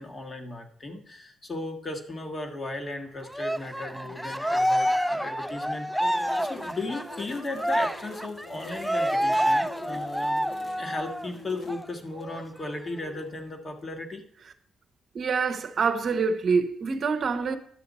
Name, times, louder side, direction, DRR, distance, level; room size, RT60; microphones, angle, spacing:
voice 1, 0.0-10.4 10.8-14.2, left 2 dB, 35° left, 1.6 m, -36 dB
Cheering, 3.3-11.3 11.7-11.8 12.2-13.2, equal, ahead, 0.3 m, -28 dB
sound 1, 6.0-11.7, left 4 dB, 60° left, 1.3 m, -45 dB
voice 2, 15.1-17.6, right 5 dB, 50° right, 0.8 m, -26 dB
11.5 x 6.8 x 4.1 m
cardioid pair, 90°, 0 cm